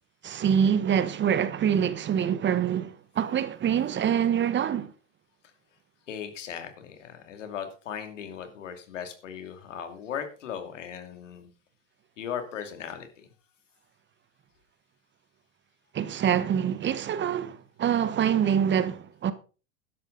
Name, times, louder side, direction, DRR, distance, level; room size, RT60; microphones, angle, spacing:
voice 1, 0.2-4.9 15.9-19.3, right 8 dB, 30° right, 1.3 m, -25 dB
voice 2, 6.1-11.5 12.2-13.3, left 8 dB, 85° left, 2.8 m, -37 dB
12.5 x 11.0 x 4.0 m
hypercardioid pair, 95°, 36 cm